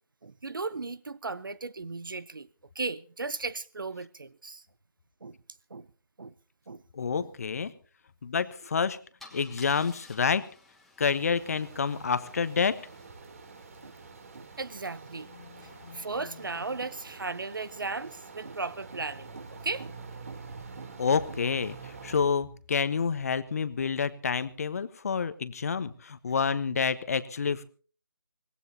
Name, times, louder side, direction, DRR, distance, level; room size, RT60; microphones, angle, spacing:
voice 1, 0.2-2.5 2.7-4.6 5.2-5.4 5.7-5.9 6.2-6.3 6.7-6.8 7.1-7.3 13.8-14.0 14.3-15.3 15.9-19.9 20.3-20.4 20.8-20.9 21.3-21.4, right 3 dB, 65° right, 0.8 m, -36 dB
voice 2, 6.9-7.7 8.2-9.0 9.3-10.4 11.0-12.8 15.4-15.5 15.8-16.0 21.0-27.6, left 6 dB, 40° left, 1.1 m, -28 dB
Car / Engine starting / Idling, 8.5-8.7 9.2-13.1, left 3 dB, ahead, 1.4 m, -55 dB
sound 1, 11.0-22.2, right 4 dB, 40° right, 3.1 m, -47 dB
25.0 x 18.0 x 2.8 m
figure-of-eight pair, 155°, 12 cm